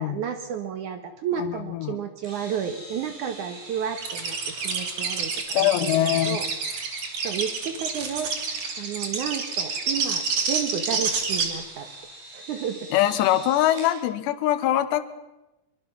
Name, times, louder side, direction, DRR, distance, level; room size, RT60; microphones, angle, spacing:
voice 1, 0.0-6.5 7.2-11.9 12.3-12.9, right 8 dB, 80° right, 8 dB, 1.8 m, -32 dB
voice 2, 1.4-2.0 5.5-6.4 12.9-15.0, left 13 dB, 75° left, 12 dB, 3.1 m, -23 dB
sound 1, 2.2-14.0, right 1 dB, 60° right, 7.8 m, -43 dB
sound 2, 4.0-11.5, right 5 dB, 45° right, 3.3 m, -28 dB
23.5 x 23.5 x 6.0 m, 0.96 s
omnidirectional pair, 5.3 m